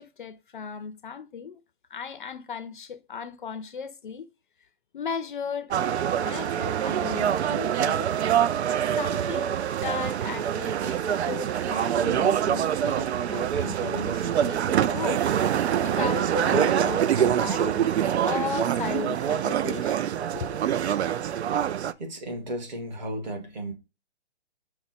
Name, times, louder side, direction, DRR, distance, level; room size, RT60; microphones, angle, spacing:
voice 1, 0.0-1.6 1.9-4.3 4.9-5.7 6.2-8.1 9.0-15.3 15.8-17.9 18.2-20.0 20.3-20.5, left 6 dB, 50° left, 0.5 m, -36 dB
sound 1, 5.7-21.9, right 9 dB, 80° right, 0.5 m, -25 dB
voice 2, 22.0-23.7, right 1 dB, 40° right, 1.4 m, -34 dB
5.7 x 2.1 x 4.0 m
hypercardioid pair, 165°, 33 cm